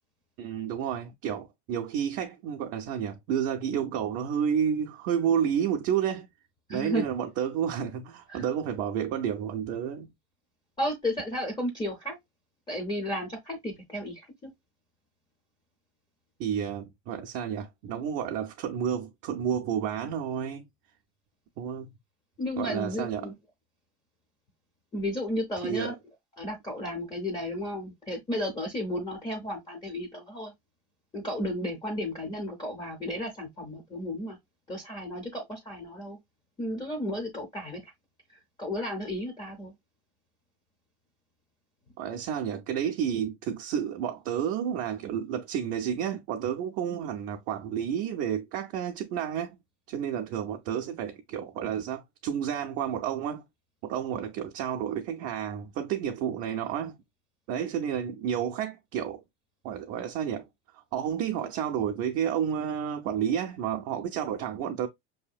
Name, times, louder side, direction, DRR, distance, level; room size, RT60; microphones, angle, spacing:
voice 1, 0.4-6.3 6.7-10.1 16.4-20.6 21.6-21.9 22.6-23.3 25.6-26.0 42.0-49.6 49.9-53.4 53.8-57.0 57.5-59.2 59.6-60.5 60.7-64.9, right 8 dB, 50° right, 0.5 m, -30 dB
voice 2, 6.7-7.1 8.3-8.5 10.8-12.2 12.7-14.5 22.4-23.3 24.9-25.9 26.4-30.5 31.1-34.4 34.7-36.2 36.6-37.9 38.3-39.7, left 1 dB, 15° left, 0.5 m, -33 dB
5.5 x 2.7 x 2.3 m
cardioid pair, 175°, 33 cm